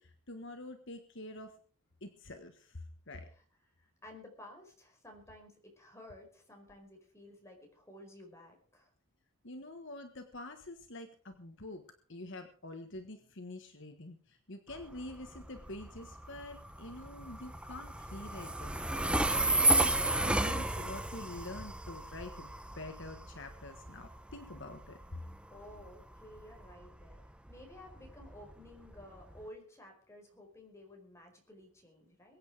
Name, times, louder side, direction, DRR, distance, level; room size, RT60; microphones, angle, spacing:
voice 1, 0.0-1.5 2.0-3.3 9.4-11.8 12.1-22.5 22.7-25.0, left 2 dB, 55° left, 6 dB, 1.5 m, -46 dB
voice 2, 3.8-8.9 25.5-27.2 27.5-32.4, left 1 dB, 15° left, 2 dB, 4.8 m, -54 dB
Train, 14.7-29.4, right 2 dB, 5° right, 0.8 m, -33 dB
23.0 x 8.9 x 4.9 m, 0.43 s
head